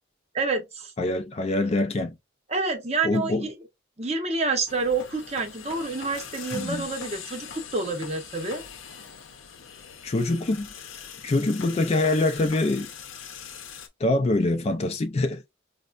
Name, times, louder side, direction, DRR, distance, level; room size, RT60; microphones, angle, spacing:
voice 1, 0.3-0.9 2.5-3.5 4.0-8.6, right 3 dB, 30° right, 0.8 m, -28 dB
voice 2, 1.0-2.1 3.0-3.5 6.5-6.8 10.0-10.7 11.2-12.9 14.0-15.5, left 2 dB, 30° left, 0.4 m, -24 dB
sound 1, 4.7-13.9, left 7 dB, 80° left, 0.7 m, -42 dB
5.2 x 2.1 x 2.3 m
head